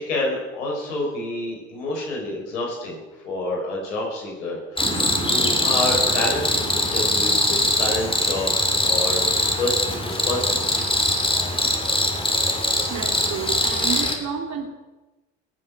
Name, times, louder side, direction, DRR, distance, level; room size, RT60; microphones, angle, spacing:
voice 1, 0.0-5.0 5.3-11.1, left 2 dB, 80° left, -1 dB, 5.3 m, -28 dB
Cricket, 4.8-14.2, left 1 dB, 15° left, 3.1 m, -22 dB
sound 1, 4.8-11.3, right 3 dB, 25° right, 4.1 m, -38 dB
voice 2, 12.9-14.7, right 7 dB, 50° right, 3 dB, 3.1 m, -30 dB
21.0 x 7.9 x 6.6 m, 1.1 s
hypercardioid pair, 60°, 36 cm